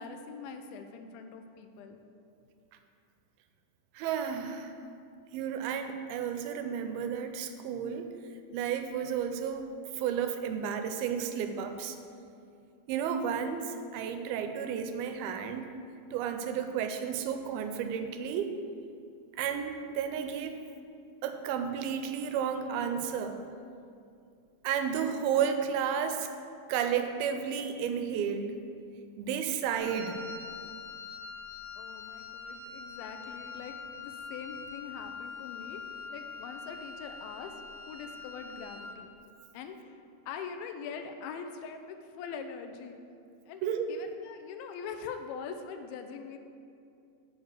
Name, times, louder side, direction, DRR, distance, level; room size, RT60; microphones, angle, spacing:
voice 1, 0.0-2.0 31.8-35.8 36.1-37.6 37.9-39.1 39.5-40.0 40.3-43.0 43.5-46.4, left 6 dB, 85° left, 7 dB, 2.4 m, -43 dB
voice 2, 4.0-4.7 5.3-8.1 8.5-12.0 12.9-15.8 16.1-18.5 19.4-20.6 21.2-23.4 24.6-26.3 26.7-28.5 29.2-30.2 43.6-43.9, right 7 dB, 90° right, 7 dB, 2.5 m, -32 dB
Wind instrument woodwind instrument, 29.8-39.0, left 5 dB, 55° right, 1.5 m, -44 dB
7.1 x 4.8 x 6.5 m, 2.5 s
omnidirectional pair, 4.3 m